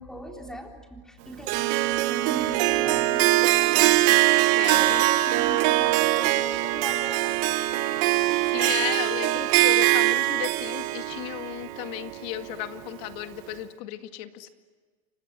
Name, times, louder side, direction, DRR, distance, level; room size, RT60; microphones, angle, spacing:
voice 1, 0.0-4.1 4.7-7.6, right 1 dB, 5° left, 2 dB, 3.9 m, -40 dB
Harp, 1.5-12.7, right 17 dB, 55° right, 1.3 m, -22 dB
voice 2, 4.5-5.7 8.4-14.5, left 14 dB, 60° left, 8 dB, 2.1 m, -35 dB
29.5 x 25.0 x 7.6 m, 1.5 s
supercardioid pair, 140°, 17 cm